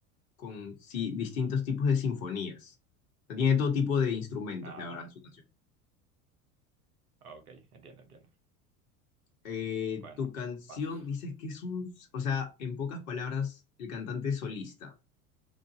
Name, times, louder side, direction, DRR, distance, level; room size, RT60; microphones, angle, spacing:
voice 1, 0.4-2.7 3.3-5.1 9.4-14.9, left 6 dB, 65° left, 1.0 m, -32 dB
voice 2, 4.6-5.1 7.2-8.3 10.0-10.3 10.7-11.0, right 4 dB, 75° right, 1.0 m, -50 dB
3.7 x 2.6 x 3.7 m
figure-of-eight pair, 75°, 44 cm